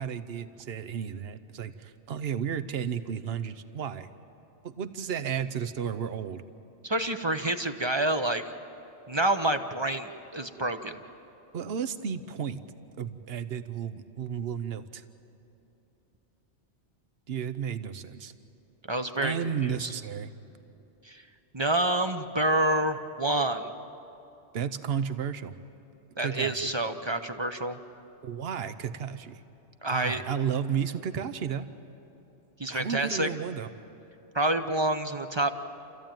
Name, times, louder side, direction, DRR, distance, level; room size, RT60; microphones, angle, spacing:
voice 1, 0.0-4.1 4.6-6.4 11.5-12.6 13.0-15.0 17.3-18.3 19.2-20.3 24.5-25.6 26.2-26.7 28.2-29.4 29.9-31.7 32.7-33.7, right 7 dB, 65° right, 12 dB, 1.0 m, -33 dB
voice 2, 6.8-8.4 9.1-11.0 18.9-19.4 19.6-19.9 21.1-21.2 21.5-23.7 26.2-27.8 29.8-30.2 32.6-33.3 34.3-35.5, right 1 dB, 30° right, 7 dB, 0.7 m, -28 dB
29.0 x 14.5 x 9.0 m, 2.9 s
omnidirectional pair, 1.2 m